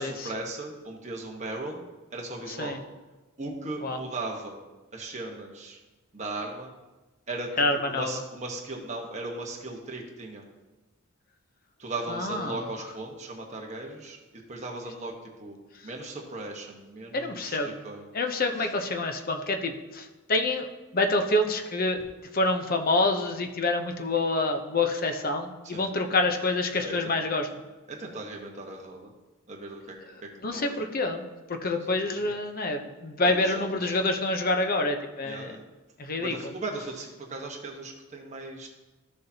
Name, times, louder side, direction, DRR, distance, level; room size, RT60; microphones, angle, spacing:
voice 1, 0.0-1.8 2.1-2.8 3.4-4.6 4.9-5.8 6.1-6.7 7.3-10.4 11.8-18.1 18.6-18.7 25.6-25.9 26.7-27.4 27.9-29.1 29.5-30.8 31.7-32.4 33.2-34.0 35.2-35.6 36.2-38.7, right 2 dB, 30° right, 0 dB, 1.2 m, -38 dB
voice 2, 7.6-8.2 12.1-12.6 17.1-17.8 18.1-20.7 20.9-22.0 22.3-27.5 30.4-31.2 31.5-35.6 36.0-36.3, left 2 dB, 40° left, 5 dB, 0.8 m, -27 dB
13.5 x 6.7 x 2.8 m, 1.1 s
head